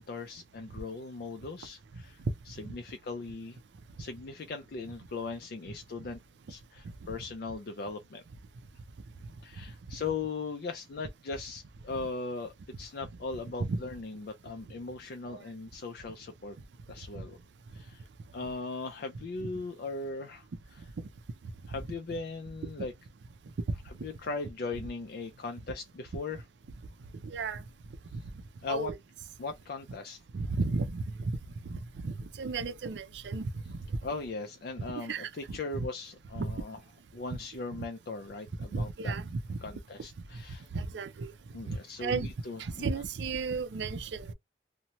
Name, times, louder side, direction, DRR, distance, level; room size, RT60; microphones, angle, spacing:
voice 1, 0.0-3.6 4.0-6.2 6.5-8.2 9.4-16.6 16.9-17.4 17.7-18.0 18.3-20.5 21.7-22.9 23.9-26.4 28.6-28.9 29.4-30.2 34.0-36.8 37.1-39.1 39.6-40.7 41.5-43.0, left 3 dB, 55° left, 0.4 m, -39 dB
voice 2, 27.2-27.6 28.1-28.2 28.7-29.0 30.3-31.3 31.7-33.8 35.1-35.9 36.4-36.5 38.7-39.6 40.7-41.3 41.7-42.3 42.6-44.3, right 4 dB, 80° right, 0.4 m, -34 dB
2.8 x 2.1 x 2.9 m
head